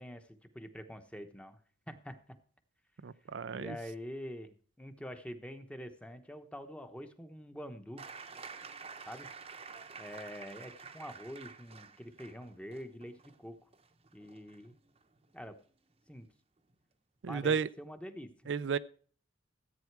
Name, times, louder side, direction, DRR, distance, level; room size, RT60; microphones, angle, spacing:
voice 1, 0.0-1.6 1.9-2.2 3.5-8.1 9.1-9.3 10.0-13.6 14.1-14.7 15.3-15.6 16.1-16.3 17.3-18.3, equal, 5° left, 1.0 m, -45 dB
voice 2, 3.0-3.8 17.2-17.7 18.5-18.8, right 6 dB, 75° right, 0.4 m, -32 dB
sound 1, 8.0-15.5 16.7-16.8, right 5 dB, 30° right, 0.8 m, -50 dB
14.0 x 8.5 x 4.7 m
head